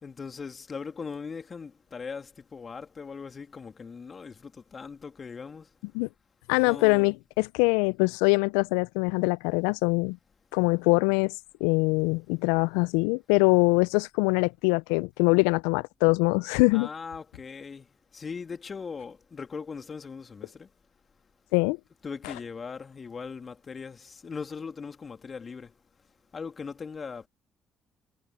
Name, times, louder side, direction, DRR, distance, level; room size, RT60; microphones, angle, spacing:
voice 1, 0.0-5.7 6.6-7.2 16.7-17.9 18.1-20.7 22.0-25.7 26.3-27.3, left 5 dB, 40° left, 2.9 m, -39 dB
voice 2, 6.5-10.2 10.5-11.3 11.6-16.9 21.5-21.8, left 29 dB, 75° left, 0.7 m, -23 dB
hypercardioid pair, 50°, 0 cm